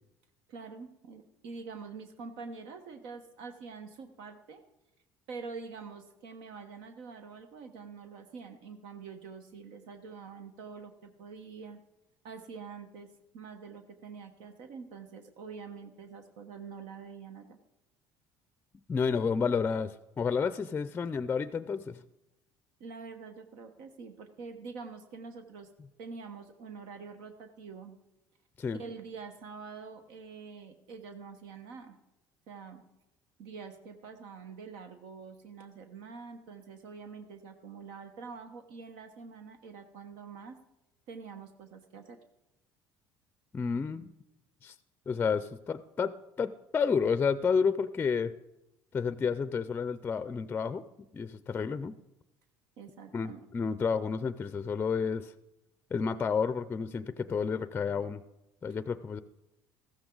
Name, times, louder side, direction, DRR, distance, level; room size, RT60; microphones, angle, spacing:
voice 1, 0.5-4.6 5.3-11.8 12.2-13.1 13.3-17.6 22.8-25.7 26.0-28.0 28.8-32.0 32.5-32.8 33.4-40.6 41.1-42.2 52.8-53.4, right 5 dB, 80° right, 7 dB, 1.2 m, -46 dB
voice 2, 18.9-22.0 28.6-28.8 43.5-44.1 44.6-44.7 45.1-48.3 48.9-50.9 51.1-52.0 53.1-55.3 55.9-58.2 58.6-59.2, left 5 dB, 25° left, 14 dB, 0.5 m, -30 dB
14.5 x 13.5 x 3.9 m, 0.94 s
cardioid pair, 115°, 8 cm